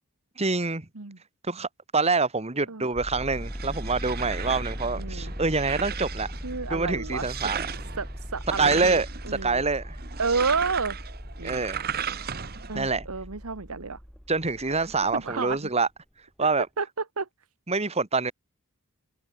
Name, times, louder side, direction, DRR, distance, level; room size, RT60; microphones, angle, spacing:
voice 1, 0.4-0.9 1.4-6.3 6.7-7.7 8.6-10.0 11.4-11.8 12.7-13.1 14.3-15.9 16.4-16.7 17.7-18.3, right 4 dB, 30° right, 1.8 m, -26 dB
sound 1, 2.9-15.6, equal, ahead, 1.9 m, -38 dB
sound 2, 3.1-12.8, right 8 dB, 45° right, 1.0 m, -37 dB
voice 2, 5.0-5.3 6.4-7.2 8.0-9.6 10.2-11.0 11.4-11.6 12.7-14.0 15.1-15.6 16.8-16.9 17.2-17.3, right 4 dB, 75° right, 1.4 m, -30 dB
open air
head